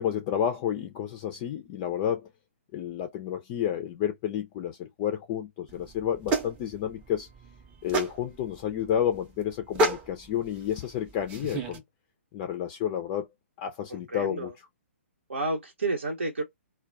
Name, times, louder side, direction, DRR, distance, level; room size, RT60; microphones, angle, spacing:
voice 1, 0.0-2.2 2.7-7.3 7.8-11.8 12.3-13.3 13.6-14.5, left 9 dB, 25° left, 0.4 m, -30 dB
sound 1, 5.7-11.8, right 2 dB, 20° right, 0.6 m, -32 dB
voice 2, 13.9-14.5 15.3-16.4, right 2 dB, 65° right, 0.7 m, -31 dB
2.2 x 2.2 x 3.7 m
figure-of-eight pair, 125°, 7 cm